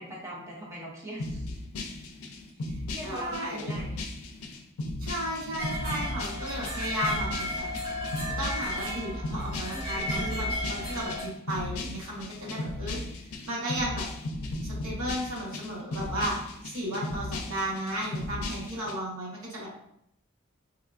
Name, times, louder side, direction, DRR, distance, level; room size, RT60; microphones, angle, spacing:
voice 1, 0.0-1.5 2.9-4.0 9.7-10.5 16.9-17.0, right 1 dB, 15° right, -6 dB, 0.7 m, -40 dB
sound 1, 1.2-18.9, left 2 dB, 85° left, 0.4 m, -36 dB
voice 2, 3.0-3.7 5.0-7.7 8.4-13.0 13.5-14.0 14.6-16.4 16.6-19.7, right 1 dB, 75° right, -4 dB, 1.0 m, -34 dB
sound 2, 5.6-11.2, equal, 45° right, 1.4 m, -34 dB
3.5 x 2.3 x 2.3 m, 0.77 s
head